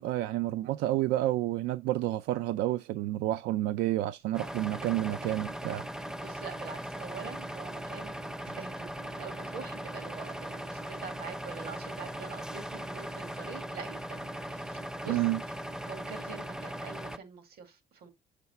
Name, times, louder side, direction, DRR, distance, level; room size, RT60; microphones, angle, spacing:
voice 1, 0.0-5.8 15.1-15.4, right 15 dB, 90° right, 0.4 m, -30 dB
sound 1, 4.3-17.2, equal, 5° right, 0.5 m, -39 dB
voice 2, 6.2-15.2 15.8-18.1, right 6 dB, 65° right, 2.0 m, -45 dB
6.8 x 4.8 x 4.2 m
cardioid pair, 110°, 17 cm